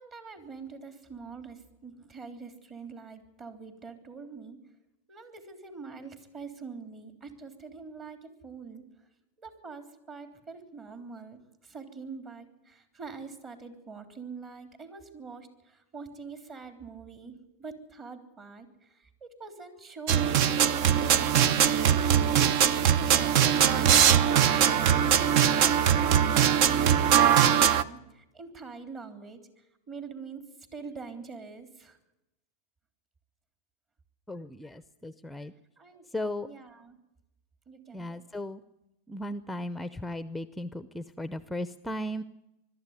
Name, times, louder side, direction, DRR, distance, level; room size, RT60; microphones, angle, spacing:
voice 1, 0.0-4.6 5.1-8.8 9.4-21.8 22.1-30.4 30.7-32.0 35.8-36.1 36.4-37.0 37.7-38.2, right 5 dB, 30° right, 7 dB, 3.4 m, -44 dB
sound 1, 20.1-27.8, right 9 dB, 55° right, 0.8 m, -21 dB
voice 2, 34.3-35.5 36.1-36.5 37.9-38.6 39.1-42.2, left 1 dB, 5° left, 13 dB, 0.7 m, -36 dB
21.5 x 13.0 x 9.7 m, 0.93 s
supercardioid pair, 120°, 0 cm